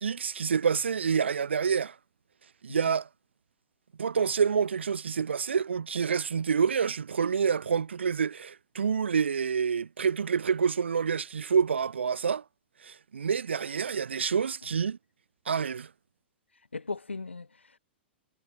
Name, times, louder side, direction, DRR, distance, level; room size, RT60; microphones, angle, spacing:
voice 1, 0.0-1.9 2.6-3.1 4.0-12.4 12.8-15.0 15.5-15.9, right 6 dB, 75° right, 1.2 m, -27 dB
voice 2, 16.5-17.8, left 3 dB, 85° left, 7.0 m, -38 dB
figure-of-eight pair, 105°, 6 cm